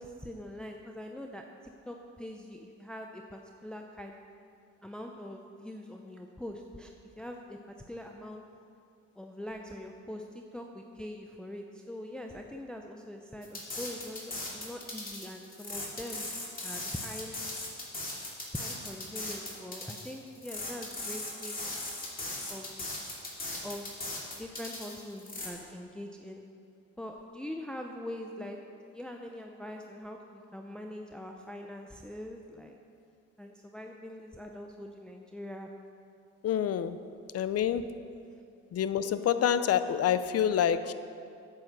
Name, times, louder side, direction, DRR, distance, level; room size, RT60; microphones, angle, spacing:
voice 1, 0.0-1.4 1.9-4.2 4.8-7.6 7.9-8.4 9.2-16.3 16.6-17.4 18.5-21.7 22.5-22.9 23.6-24.0 24.3-26.4 27.0-28.6 28.9-32.8 33.4-35.7, left 1 dB, 5° left, 2 dB, 0.6 m, -43 dB
sound 1, 13.4-25.5, left 2 dB, 30° left, 2.7 m, -38 dB
voice 2, 36.4-37.0 37.3-37.8 38.7-40.9, left 9 dB, 55° left, 12 dB, 0.6 m, -27 dB
8.9 x 8.3 x 6.7 m, 2.5 s
cardioid pair, 90°, 30 cm